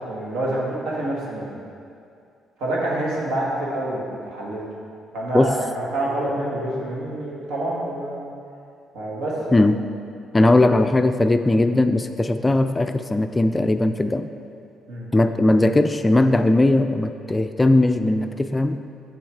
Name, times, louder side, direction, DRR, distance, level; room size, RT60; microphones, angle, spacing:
voice 1, 0.0-1.5 2.6-4.6 5.1-8.3 8.9-9.6 14.9-15.1, right 1 dB, 65° right, -4 dB, 1.6 m, -27 dB
voice 2, 10.3-14.3 15.1-18.8, left 2 dB, 20° left, 8 dB, 0.3 m, -18 dB
6.9 x 6.8 x 3.6 m, 2.4 s
hypercardioid pair, 45°, 0 cm